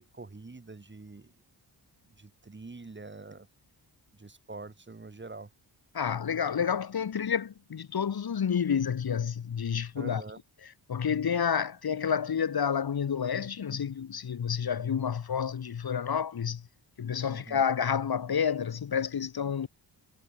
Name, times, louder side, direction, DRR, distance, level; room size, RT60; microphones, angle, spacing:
voice 1, 0.0-1.3 2.2-3.5 4.2-5.5 10.0-10.4 17.3-17.6, right 3 dB, 25° right, 2.3 m, -45 dB
voice 2, 5.9-10.2 10.6-16.6 17.0-19.7, left 7 dB, 55° left, 1.3 m, -29 dB
wide cardioid pair, 110°, 44 cm